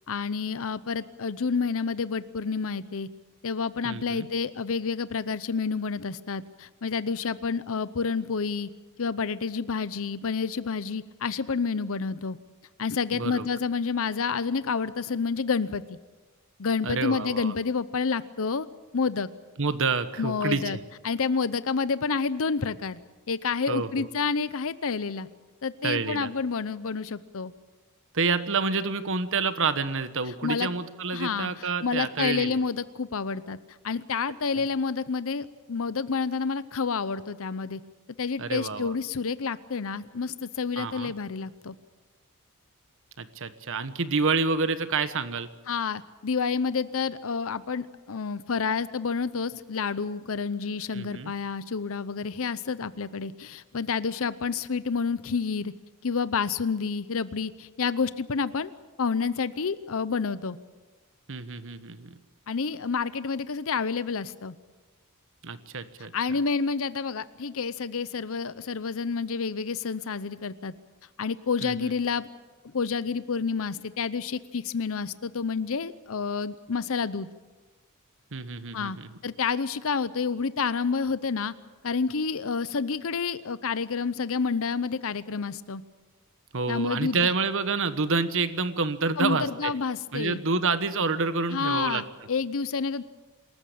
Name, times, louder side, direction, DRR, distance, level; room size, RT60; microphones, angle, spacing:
voice 1, 0.1-3.1 3.4-8.7 9.0-12.4 12.8-16.0 16.6-18.7 18.9-19.3 20.2-20.8 21.0-23.0 23.3-25.3 25.6-27.5 30.4-30.7 31.1-33.6 33.8-37.8 38.2-41.8 45.7-55.7 56.0-58.7 59.0-60.6 62.5-64.5 66.1-70.7 71.2-72.3 72.6-77.3 78.7-79.0 79.2-81.5 81.8-85.8 86.7-87.3 89.2-90.4 91.5-93.0, left 5 dB, 65° left, 15 dB, 0.7 m, -29 dB
voice 2, 3.8-4.3 13.1-13.4 16.8-17.5 19.6-20.8 23.7-24.1 25.8-26.3 28.1-32.6 38.4-38.9 40.8-41.1 43.2-45.5 50.9-51.3 61.3-62.1 65.4-66.1 71.6-71.9 78.3-79.1 86.5-89.7 90.1-92.0, right 4 dB, 60° right, 12 dB, 1.2 m, -28 dB
26.5 x 14.0 x 8.7 m, 1.2 s
head